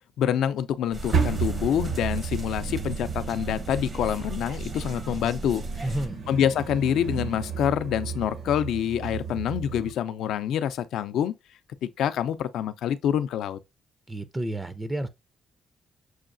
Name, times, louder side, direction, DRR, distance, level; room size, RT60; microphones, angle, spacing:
voice 1, 0.2-5.9 6.3-11.3 11.8-13.6, left 9 dB, 80° left, 0.4 m, -26 dB
sound 1, 0.9-6.1, right 3 dB, 40° right, 0.7 m, -36 dB
sound 2, 1.1-9.9, right 6 dB, 65° right, 1.0 m, -32 dB
voice 2, 5.8-6.2 14.1-15.1, right 1 dB, 15° right, 0.4 m, -30 dB
6.2 x 2.3 x 2.5 m
cardioid pair, 90°, 0 cm